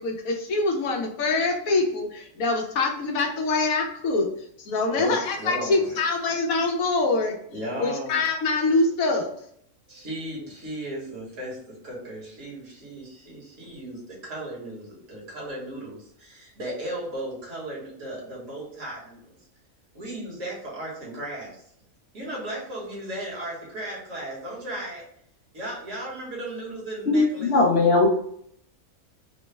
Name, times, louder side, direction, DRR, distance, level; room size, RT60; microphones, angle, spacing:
voice 1, 0.0-4.3 4.6-7.4 7.8-9.3, left 3 dB, 80° left, 1 dB, 1.2 m, -24 dB
voice 2, 4.9-6.0 7.5-8.2 9.9-19.4 19.9-21.6 22.1-25.0 25.5-27.5, right 1 dB, 65° right, -4 dB, 1.7 m, -36 dB
voice 3, 27.1-28.1, left 3 dB, 60° left, -1 dB, 0.8 m, -19 dB
3.8 x 2.1 x 3.3 m, 0.69 s
omnidirectional pair, 1.4 m